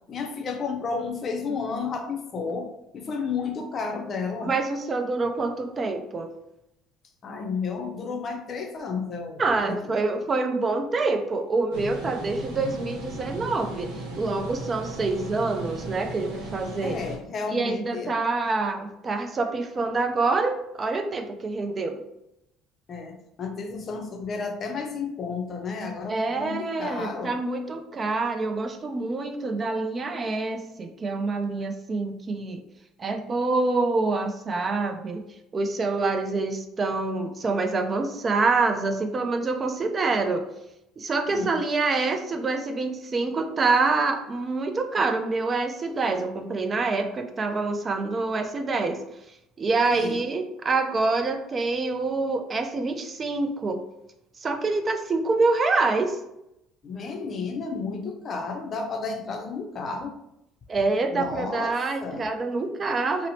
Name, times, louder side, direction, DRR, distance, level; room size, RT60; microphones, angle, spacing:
voice 1, 0.1-4.5 7.2-9.8 16.8-18.2 22.9-27.4 41.3-41.6 49.9-50.3 56.8-60.1 61.1-62.3, left 4 dB, 45° left, 4 dB, 0.5 m, -32 dB
voice 2, 4.4-6.3 9.4-17.0 17.5-22.0 26.1-32.6 33.0-35.2 35.5-40.5 41.0-49.0 49.6-53.8 54.4-56.2 60.7-63.3, right 3 dB, 35° right, 6 dB, 0.4 m, -26 dB
sound 1, 11.7-17.2, right 1 dB, 80° right, 0.6 m, -36 dB
2.8 x 2.0 x 2.8 m, 0.84 s
hypercardioid pair, 70°, 0 cm